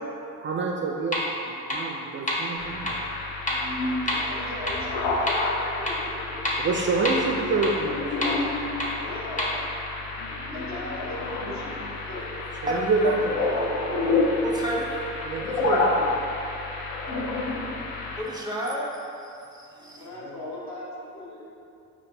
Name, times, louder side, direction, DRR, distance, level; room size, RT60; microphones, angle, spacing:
voice 1, 0.4-3.0 6.6-8.7 12.6-13.3 15.2-16.2 20.2-20.4, right 3 dB, 30° right, 0 dB, 0.4 m, -27 dB
sound 1, 1.1-1.2 1.7-1.8 2.3-2.4 2.9-3.0 3.5-3.6 4.1-4.2 4.7-4.8 5.3-5.4 5.9-6.0 6.4-6.5 7.1-7.2 7.6-7.7 8.2-8.3 8.8-8.9 9.4-9.5, left 1 dB, 20° left, 0.9 m, -26 dB
sound 2, 2.6-18.2, left 3 dB, 85° left, 0.5 m, -29 dB
voice 2, 4.1-6.3 8.9-9.6 9.8-9.9 10.3-11.8 12.1-12.2 13.1-14.2 20.0-21.5, left 1 dB, 40° left, -4 dB, 1.0 m, -37 dB
voice 3, 14.4-15.0 18.2-18.9 19.5-20.1, right 1 dB, 10° right, -3 dB, 0.8 m, -30 dB
5.0 x 2.6 x 2.7 m, 2.7 s
hypercardioid pair, 55°, 41 cm